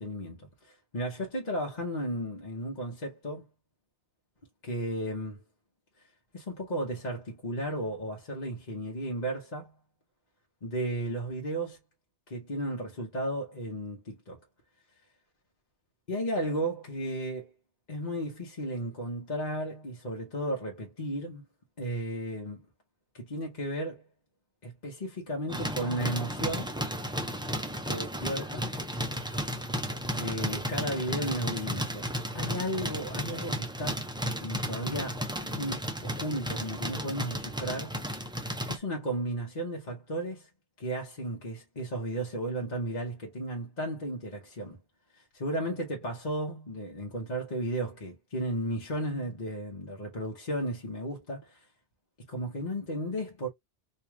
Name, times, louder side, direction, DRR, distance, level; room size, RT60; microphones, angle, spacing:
voice 1, 0.0-3.5 4.6-5.4 6.3-9.7 10.6-11.8 12.3-14.4 16.1-17.5 17.9-21.4 21.8-22.7 23.1-24.0 24.6-26.7 27.9-28.7 30.2-32.1 32.3-34.1 34.4-38.0 38.7-40.5 40.8-44.8 45.1-51.7 52.3-53.5, right 1 dB, 40° left, 1.0 m, -34 dB
sound 1, 25.5-38.8, equal, 5° right, 0.5 m, -34 dB
3.1 x 2.8 x 3.4 m
omnidirectional pair, 1.2 m